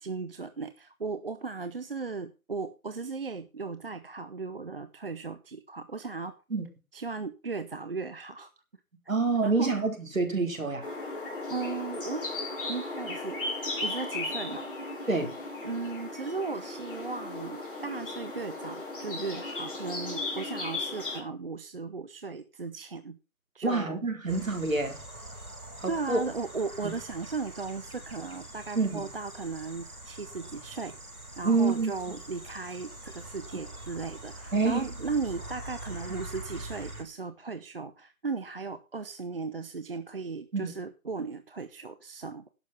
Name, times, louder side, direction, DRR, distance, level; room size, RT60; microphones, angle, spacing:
voice 1, 0.0-6.4 6.9-8.5 9.4-9.7 11.5-12.3 12.7-13.4 13.8-14.7 15.6-23.2 23.5-24.0 25.9-30.9 31.4-42.5, right 4 dB, 40° right, 0.8 m, -36 dB
voice 2, 9.1-10.9 15.1-15.4 23.6-25.0 25.8-26.2 26.8-26.9 28.7-29.0 31.4-31.9 34.5-34.9 36.1-36.2 40.5-40.7, right 3 dB, 65° right, 4.3 m, -27 dB
sound 1, 10.8-21.2, left 2 dB, 40° left, 4.7 m, -36 dB
sound 2, 24.3-37.0, right 1 dB, 90° right, 3.7 m, -44 dB
11.5 x 7.8 x 5.5 m
figure-of-eight pair, 155°, 43 cm